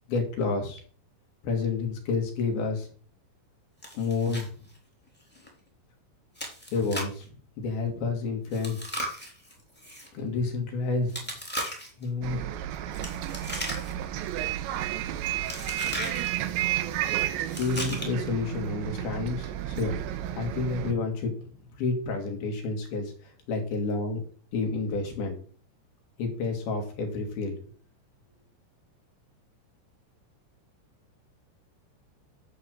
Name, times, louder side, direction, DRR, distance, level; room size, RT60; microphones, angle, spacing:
voice 1, 0.1-0.8 1.4-2.9 4.0-4.5 6.7-8.8 10.1-11.2 12.0-12.4 17.6-20.0 20.3-21.3 21.8-24.2 24.5-25.4 26.2-27.6, left 3 dB, 55° left, 3 dB, 3.6 m, -29 dB
Chewing mastication, 3.8-4.5 4.7-4.8 5.3-5.5 6.3-7.2 8.5-10.1 11.1-12.0 12.9-14.1 14.4-14.8 15.4-16.3 17.4-18.3, equal, 5° left, 1.9 m, -36 dB
Bus, 12.2-20.9, right 12 dB, 80° right, 2.8 m, -32 dB
11.5 x 4.2 x 7.8 m, 0.42 s
omnidirectional pair, 5.9 m